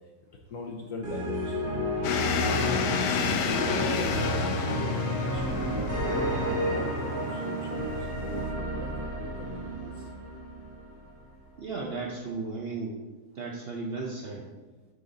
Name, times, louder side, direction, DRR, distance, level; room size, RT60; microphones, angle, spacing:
voice 1, 0.5-1.7 2.5-8.9 9.2-10.1, left 3 dB, 60° left, 0 dB, 0.9 m, -40 dB
sound 1, 1.0-11.1, equal, 60° right, 2.0 m, -31 dB
sound 2, 2.0-8.5, left 6 dB, 75° left, 1.2 m, -31 dB
voice 2, 11.6-12.9 13.3-14.4, right 3 dB, 90° right, -1 dB, 0.5 m, -35 dB
8.0 x 4.0 x 3.9 m, 1.2 s
omnidirectional pair, 2.0 m